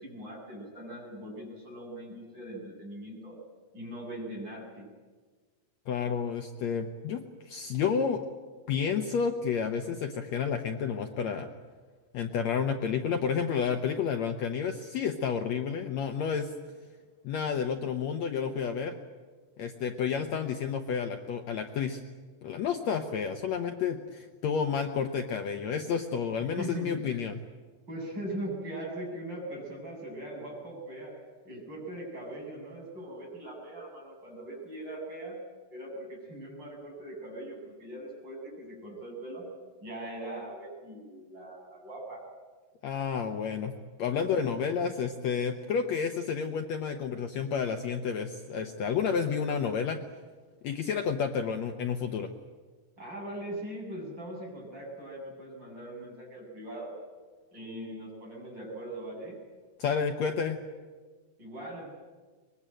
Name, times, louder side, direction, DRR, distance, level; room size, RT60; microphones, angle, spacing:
voice 1, 0.0-3.4 3.7-4.9 26.4-27.2 27.9-35.4 35.7-39.5 39.8-42.2 44.2-44.5 53.0-57.0 57.5-59.4 61.4-61.9, right 1 dB, 30° right, -2 dB, 8.2 m, -40 dB
voice 2, 5.9-8.2 8.7-11.5 12.1-16.5 17.2-18.9 19.6-22.0 22.4-27.4 42.8-43.7 44.0-50.0 50.6-52.3 59.8-60.6, left 6 dB, 65° left, 5 dB, 2.1 m, -30 dB
24.0 x 21.5 x 9.1 m, 1.4 s
omnidirectional pair, 3.8 m